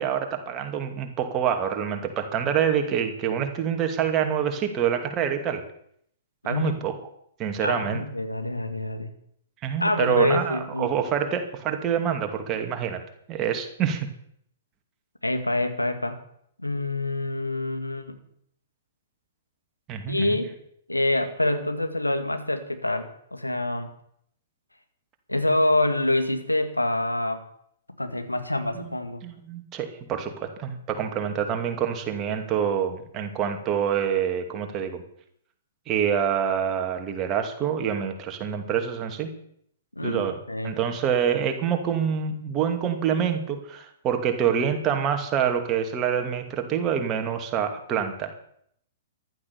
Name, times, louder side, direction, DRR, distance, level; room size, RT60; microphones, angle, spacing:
voice 1, 0.0-5.6 6.4-6.9 7.4-8.0 9.6-13.0 13.3-14.1 19.9-20.4 28.8-28.9 29.2-35.0 35.9-39.3 40.0-40.3 40.6-48.3, right 8 dB, 25° right, 5 dB, 2.5 m, -26 dB
voice 2, 7.6-9.1 9.8-10.9 15.2-16.2 16.6-18.2 20.1-20.5 20.9-23.9 25.3-27.4 28.0-29.2 40.0-40.8, left 1 dB, 85° left, 7 dB, 2.1 m, -26 dB
15.0 x 11.5 x 7.0 m, 0.69 s
figure-of-eight pair, 110°, 0 cm